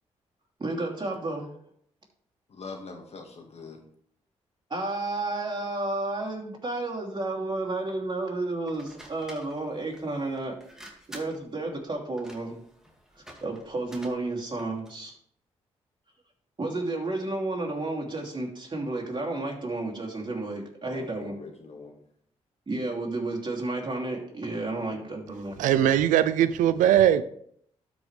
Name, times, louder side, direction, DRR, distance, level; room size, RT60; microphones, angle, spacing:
voice 1, 0.6-1.5 4.7-10.5 11.1-12.6 13.4-15.1 16.6-21.3 22.7-25.6, right 2 dB, 35° right, 2.9 m, -31 dB
voice 2, 2.5-3.8 20.8-22.0 24.6-25.2, left 4 dB, 55° left, 1.9 m, -43 dB
sound 1, 8.7-15.0, right 1 dB, 5° right, 2.2 m, -50 dB
voice 3, 25.6-27.2, right 11 dB, 90° right, 0.4 m, -20 dB
12.5 x 5.1 x 3.3 m
supercardioid pair, 55°, 13 cm